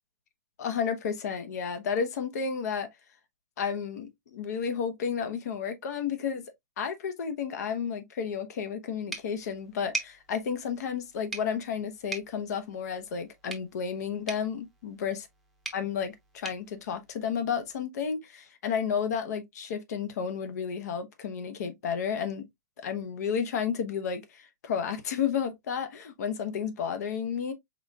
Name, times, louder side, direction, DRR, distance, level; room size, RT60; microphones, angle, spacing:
voice 1, 0.6-2.9 3.6-6.4 6.8-15.2 15.7-22.5 22.8-27.5, left 7 dB, 65° left, 1.0 m, -32 dB
sound 1, 9.1-17.8, right 3 dB, ahead, 0.8 m, -43 dB
5.0 x 3.8 x 2.3 m
hypercardioid pair, 160°, 10 cm